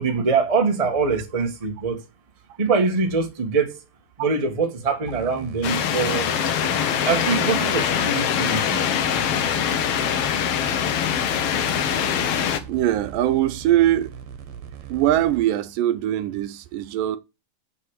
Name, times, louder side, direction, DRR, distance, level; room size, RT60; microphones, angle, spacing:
voice 1, 0.0-2.0 2.6-3.8 4.2-6.3 7.0-8.8, right 4 dB, 20° right, 0.8 m, -23 dB
sound 1, 5.0-15.5, right 7 dB, 60° right, 2.3 m, -39 dB
sound 2, 5.6-12.6, left 8 dB, 70° left, 1.5 m, -23 dB
voice 2, 12.2-14.1 14.9-17.2, right 12 dB, 80° right, 2.4 m, -22 dB
7.8 x 7.0 x 6.5 m
omnidirectional pair, 3.9 m